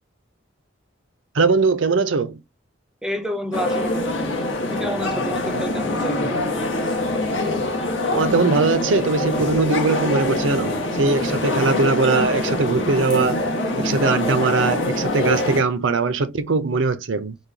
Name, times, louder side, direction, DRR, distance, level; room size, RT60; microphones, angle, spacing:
voice 1, 1.3-2.4 8.1-13.4 13.8-17.4, right 4 dB, 80° right, 0.6 m, -21 dB
voice 2, 3.0-4.3 4.6-6.3, equal, 5° right, 0.5 m, -29 dB
sound 1, 3.5-15.6, left 2 dB, 75° left, 1.2 m, -24 dB
4.7 x 2.3 x 2.6 m
head